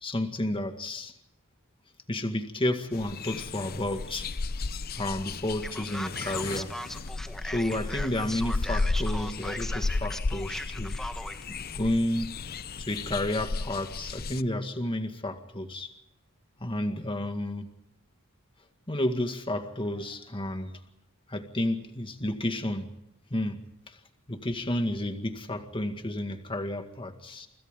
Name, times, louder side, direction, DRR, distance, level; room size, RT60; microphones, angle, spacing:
voice 1, 0.0-1.1 2.1-4.3 5.0-6.7 7.4-11.0 11.5-12.4 12.8-15.9 16.6-17.7 18.9-20.8 21.3-22.9 23.3-23.6 23.9-24.0 24.3-27.5, left 1 dB, 25° left, 6 dB, 2.0 m, -31 dB
sound 1, 2.9-14.4, left 3 dB, 45° left, 0.7 m, -34 dB
Male speech man speaking, 5.6-11.4, equal, ahead, 1.3 m, -38 dB
29.0 x 25.5 x 3.8 m, 0.85 s
head